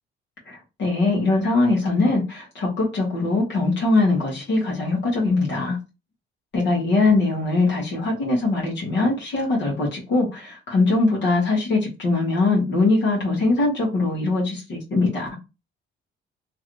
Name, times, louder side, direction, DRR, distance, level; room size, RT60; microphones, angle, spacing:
voice 1, 0.5-5.8 6.5-15.3, left 3 dB, 65° left, -3 dB, 1.4 m, -21 dB
3.1 x 2.6 x 3.1 m, 0.28 s
cardioid pair, 90°, 20 cm